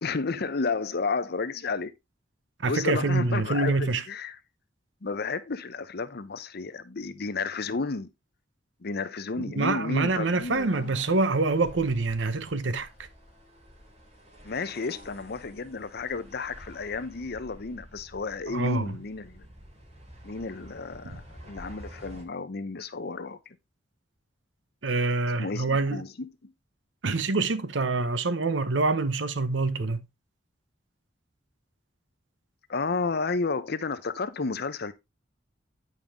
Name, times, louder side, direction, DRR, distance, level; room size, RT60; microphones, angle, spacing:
voice 1, 0.0-1.9 2.7-4.4 5.0-8.1 8.8-10.9 14.4-19.5 20.2-23.4 25.4-26.5 32.7-34.9, left 4 dB, 55° left, 0.8 m, -32 dB
voice 2, 2.6-4.0 9.4-12.9 18.5-18.9 21.1-21.2 24.8-26.0 27.0-30.0, right 3 dB, 70° right, 0.9 m, -26 dB
sound 1, 9.9-22.2, equal, 35° right, 2.8 m, -50 dB
9.1 x 5.4 x 3.6 m
head